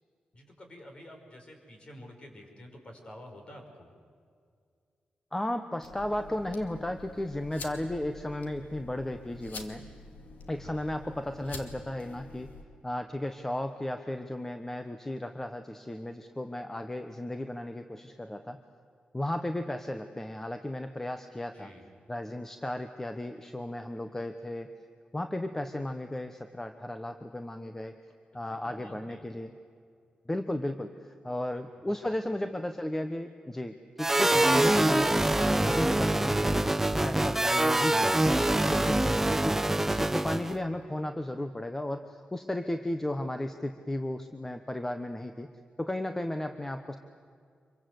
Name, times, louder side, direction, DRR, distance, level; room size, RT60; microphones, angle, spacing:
voice 1, 0.3-3.9 10.6-10.8 21.5-21.9 28.5-29.2 31.3-31.6 31.9-32.1, equal, 40° left, 3 dB, 5.3 m, -50 dB
voice 2, 5.3-9.8 10.5-12.5 12.8-18.6 19.1-21.7 22.1-24.7 25.1-28.0 28.3-29.5 30.3-30.9 31.2-36.8 37.0-38.3 38.7-39.1 39.4-45.5 45.8-47.0, left 1 dB, 15° left, 7 dB, 1.1 m, -34 dB
sound 1, 5.8-12.6, left 3 dB, 85° left, 2.3 m, -47 dB
sound 2, 34.0-40.5, right 1 dB, 10° right, 0.8 m, -25 dB
26.0 x 23.5 x 8.0 m, 2.2 s
wide cardioid pair, 115°, 3 cm